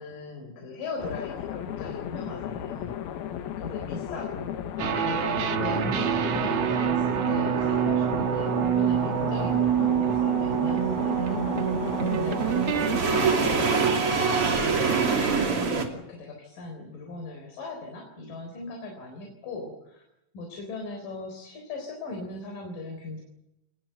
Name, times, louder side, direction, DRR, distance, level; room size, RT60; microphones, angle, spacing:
voice 1, 0.0-3.0 3.6-4.5 5.0-11.6 12.1-20.0 20.3-23.2, left 3 dB, 65° left, 3 dB, 5.4 m, -39 dB
sound 1, 1.0-13.8, left 10 dB, 85° left, 3.3 m, -35 dB
sound 2, 4.8-13.0, right 9 dB, 55° right, 2.0 m, -26 dB
sound 3, 8.9-15.9, right 5 dB, 40° right, 3.4 m, -26 dB
25.0 x 20.5 x 8.1 m, 0.86 s
omnidirectional pair, 4.3 m